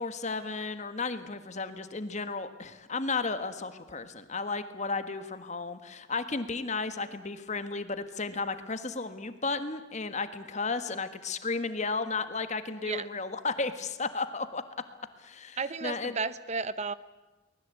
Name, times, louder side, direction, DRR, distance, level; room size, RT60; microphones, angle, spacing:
voice 1, 0.0-14.6 15.2-16.1, left 4 dB, 35° left, 10 dB, 1.6 m, -34 dB
voice 2, 15.6-16.9, right 4 dB, 35° right, 15 dB, 0.7 m, -33 dB
24.5 x 20.0 x 8.4 m, 1.1 s
head